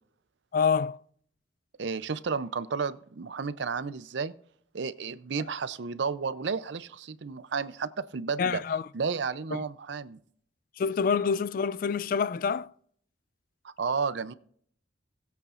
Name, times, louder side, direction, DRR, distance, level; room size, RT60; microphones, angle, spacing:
voice 1, 0.5-1.0 8.4-8.9 9.5-9.6 10.8-12.7, left 6 dB, 50° left, 0.3 m, -27 dB
voice 2, 1.8-4.3 4.7-8.6 8.9-10.2 13.6-14.3, right 5 dB, 75° right, 0.6 m, -32 dB
20.0 x 8.3 x 2.5 m
head